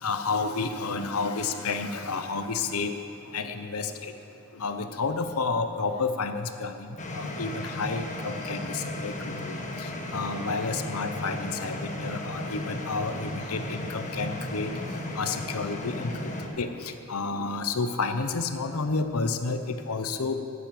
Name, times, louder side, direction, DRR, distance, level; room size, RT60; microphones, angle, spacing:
voice 1, 0.0-2.9 3.3-4.1 4.5-6.9 7.1-14.7 15.1-20.4, left 4 dB, 80° left, 8 dB, 0.8 m, -30 dB
sound 1, 7.0-16.5, left 1 dB, 35° left, 1.5 m, -35 dB
13.0 x 10.0 x 7.6 m, 2.6 s
head